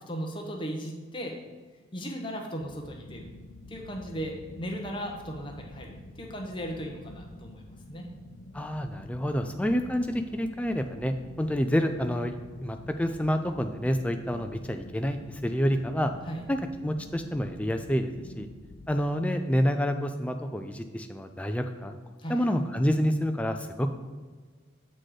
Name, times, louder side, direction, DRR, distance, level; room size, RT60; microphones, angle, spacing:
voice 1, 0.1-1.4 1.9-3.3 3.7-5.9 6.2-8.1 9.6-9.7 16.3-16.4 22.2-22.3, equal, 25° left, 1 dB, 0.9 m, -36 dB
sound 1, 2.6-19.1, left 1 dB, 90° left, 0.6 m, -48 dB
voice 2, 8.5-12.3 12.6-16.1 16.5-16.6 16.8-18.1 18.4-18.5 18.9-22.0 22.3-23.9, equal, 5° left, 6 dB, 0.4 m, -28 dB
7.6 x 4.2 x 4.9 m, 1.4 s
head